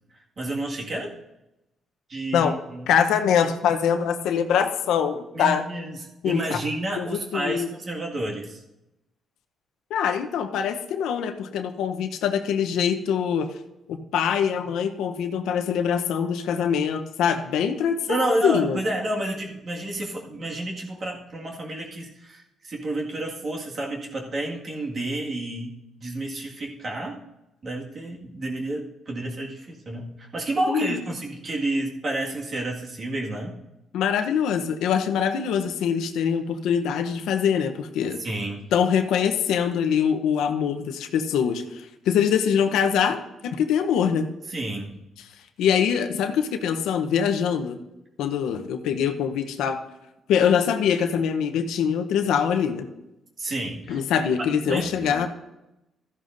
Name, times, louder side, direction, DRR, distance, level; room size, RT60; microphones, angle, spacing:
voice 1, 0.4-1.1 2.1-2.9 5.3-8.6 18.1-25.7 26.0-27.2 27.6-33.5 38.2-38.6 44.5-45.0 53.4-54.0 54.4-55.3, right 1 dB, 45° right, -1 dB, 1.9 m, -30 dB
voice 2, 2.9-5.6 6.2-6.6 7.0-7.7 9.9-13.5 13.9-18.8 30.7-31.0 33.9-38.2 38.7-43.2 43.4-44.3 45.6-47.8 48.2-49.8 50.3-52.9 53.9-55.3, left 7 dB, 85° left, 7 dB, 0.8 m, -23 dB
13.5 x 11.0 x 2.6 m, 0.94 s
cardioid pair, 90°, 0 cm